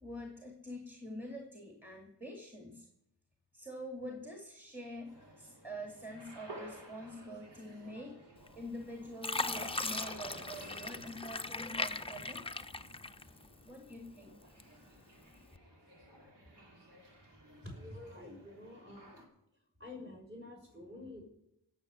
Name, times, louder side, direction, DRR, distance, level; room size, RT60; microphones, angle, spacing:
voice 1, 0.0-2.9 3.5-8.2 8.6-12.5 13.6-14.4, equal, 5° right, 1 dB, 2.3 m, -46 dB
sound 1, 5.1-19.2, right 1 dB, 75° right, 3.6 m, -54 dB
Fill (with liquid), 8.5-8.8 9.2-13.6 14.1-14.9 15.4-15.6, left 3 dB, 15° left, 0.6 m, -39 dB
sound 2, 9.4-13.7, right 1 dB, 50° right, 4.8 m, -58 dB
voice 2, 17.6-19.2 19.8-21.2, left 2 dB, 30° right, 2 dB, 6.2 m, -48 dB
18.0 x 6.7 x 8.2 m, 0.81 s
wide cardioid pair, 75°, 42 cm